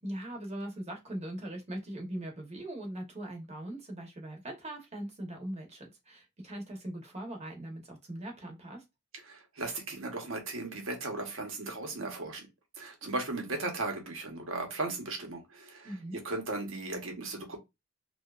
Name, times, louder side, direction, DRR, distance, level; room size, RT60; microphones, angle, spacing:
voice 1, 0.0-8.8 15.8-16.2, right 1 dB, 35° right, 0.8 m, -40 dB
voice 2, 9.2-12.5 12.8-15.9 16.2-17.6, right 2 dB, 80° right, 0.9 m, -36 dB
2.7 x 2.3 x 2.3 m
head